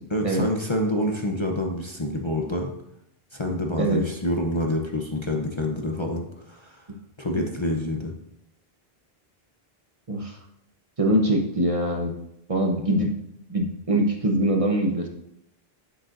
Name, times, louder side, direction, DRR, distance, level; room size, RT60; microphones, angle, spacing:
voice 1, 0.1-2.7 3.3-6.9 7.2-8.1, left 1 dB, 30° left, 1 dB, 0.7 m, -27 dB
voice 2, 11.0-12.1 12.5-13.1 13.5-15.1, right 1 dB, 35° right, 2 dB, 0.9 m, -23 dB
9.1 x 8.2 x 2.6 m, 0.80 s
omnidirectional pair, 1.0 m